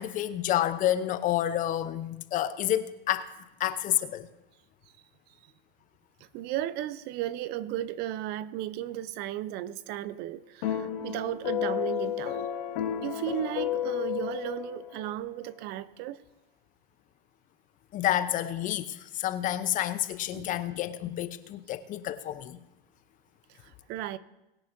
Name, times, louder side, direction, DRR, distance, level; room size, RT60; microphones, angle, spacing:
voice 1, 0.0-3.3 3.6-4.3 17.9-22.6, left 12 dB, 30° left, 0.7 m, -29 dB
voice 2, 6.3-12.5 13.0-16.2 20.3-20.6 23.5-24.2, right 12 dB, 35° right, 0.6 m, -35 dB
sound 1, 10.6-15.1, left 11 dB, 60° left, 1.9 m, -32 dB
22.0 x 10.0 x 2.7 m
hypercardioid pair, 115°, 29 cm